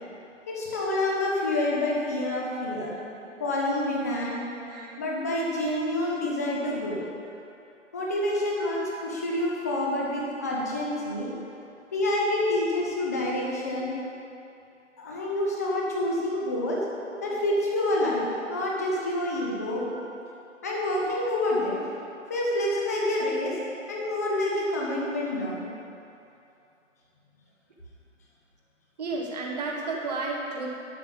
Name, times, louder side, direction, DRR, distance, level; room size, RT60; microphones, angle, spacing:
voice 1, 0.5-2.9 3.4-4.4 5.0-7.0 7.9-11.3 11.9-14.0 15.0-16.8 17.2-18.2 18.5-19.9 20.6-21.8 22.3-23.6 23.9-25.7, left 1 dB, 15° left, -3 dB, 0.7 m, -27 dB
voice 2, 2.9-3.5 4.7-5.0 8.6-8.7 14.0-14.1 15.8-16.3 17.1-17.4 19.9-20.0 23.9-24.1 29.0-30.7, right 3 dB, 30° right, -2 dB, 1.5 m, -34 dB
12.0 x 5.5 x 7.1 m, 2.7 s
hypercardioid pair, 165°, 39 cm